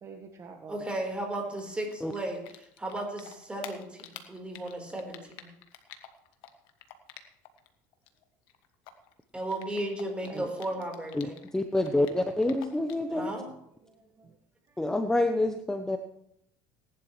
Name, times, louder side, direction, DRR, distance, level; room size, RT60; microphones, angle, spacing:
voice 1, 0.0-0.8 10.2-10.5 12.9-13.6 13.8-14.4 14.7-14.8, right 5 dB, 35° right, 3 dB, 1.4 m, -48 dB
voice 2, 0.7-5.5 9.3-11.3 13.1-13.5, right 1 dB, 10° right, 1 dB, 4.1 m, -35 dB
Typing, 1.5-2.9 3.2-7.7 7.9-11.5 11.8-13.1, left 11 dB, 70° left, 1.5 m, -48 dB
voice 3, 11.5-13.3 14.8-16.0, left 2 dB, 5° left, 7 dB, 0.8 m, -27 dB
18.5 x 11.0 x 3.2 m, 0.75 s
supercardioid pair, 105°, 9 cm